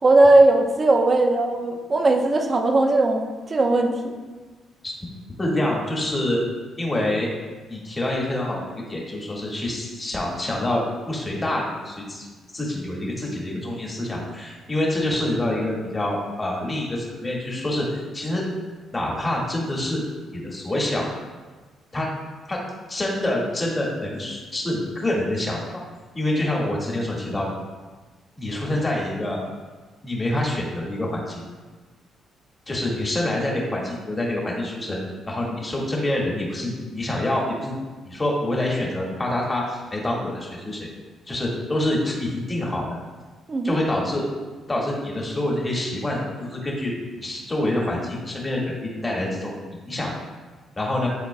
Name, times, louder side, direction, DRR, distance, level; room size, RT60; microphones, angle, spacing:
voice 1, 0.0-4.1 26.5-26.6 43.5-43.8, right 2 dB, 35° right, 3 dB, 0.8 m, -18 dB
voice 2, 5.4-6.4 6.8-7.3 7.7-17.9 18.1-18.4 18.9-20.0 20.3-21.1 21.9-22.1 22.5-22.6 22.9-25.8 26.1-27.5 28.4-29.4 30.0-31.4 32.7-35.0 35.3-37.8 38.0-40.9 41.3-42.9 43.6-44.2 44.7-49.5 49.9-50.1 50.8-51.1, left 1 dB, 20° left, -3 dB, 1.8 m, -26 dB
11.0 x 3.9 x 2.2 m, 1.3 s
cardioid pair, 90°, 0 cm